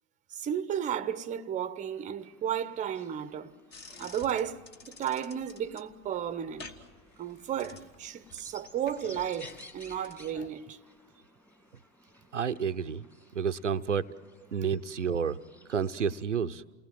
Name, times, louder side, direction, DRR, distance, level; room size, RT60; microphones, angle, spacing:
voice 1, 0.3-3.5 3.9-6.7 7.2-10.8, right 9 dB, 20° right, 0.8 m, -34 dB
sound 1, 2.2-16.3, left 1 dB, 5° left, 2.2 m, -57 dB
sound 2, 3.7-10.5, left 4 dB, 30° left, 1.6 m, -50 dB
voice 2, 12.3-13.0 13.3-14.1 14.5-15.4 15.7-16.6, right 7 dB, 90° right, 0.7 m, -30 dB
29.0 x 19.5 x 7.6 m
figure-of-eight pair, 95°, 35 cm